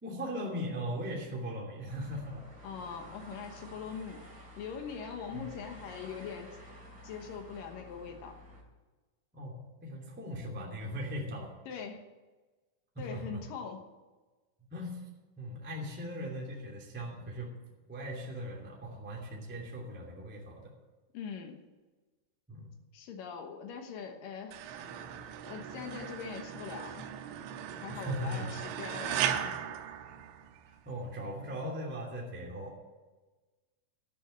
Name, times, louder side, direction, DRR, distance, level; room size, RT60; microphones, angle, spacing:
voice 1, 0.0-2.4 5.3-5.5 9.3-11.5 12.9-13.4 14.7-15.1 15.4-17.5 17.9-20.7 22.5-22.7 27.9-28.5 30.7-32.7, equal, 5° right, -2 dB, 1.3 m, -39 dB
sound 1, 1.9-8.6, equal, 25° right, 2.5 m, -51 dB
voice 2, 2.6-4.2 4.6-6.6 7.0-8.4 11.7-12.0 13.0-13.9 21.1-21.6 22.9-24.6 25.5-27.1 27.8-29.8, left 6 dB, 70° left, 5 dB, 2.2 m, -42 dB
sound 2, 24.5-30.8, right 9 dB, 85° right, 3.1 m, -37 dB
13.0 x 6.9 x 8.7 m, 1.2 s
omnidirectional pair, 5.4 m